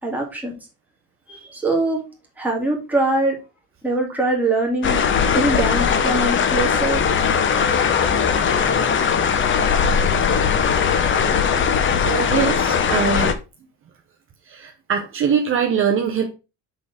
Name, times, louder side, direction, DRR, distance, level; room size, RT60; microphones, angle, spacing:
voice 1, 0.0-0.5 1.3-2.0 2.4-3.4 3.8-5.0 5.3-7.0, right 2 dB, 5° right, -2 dB, 2.3 m, -22 dB
sound 1, 4.8-13.3, left 6 dB, 35° left, 0.7 m, -19 dB
sound 2, 6.7-13.3, left 2 dB, 70° left, 2.4 m, -34 dB
voice 2, 12.0-13.4 14.5-16.3, right 7 dB, 35° right, 2 dB, 0.8 m, -22 dB
6.6 x 3.9 x 4.8 m, 0.29 s
cardioid pair, 155°, 35 cm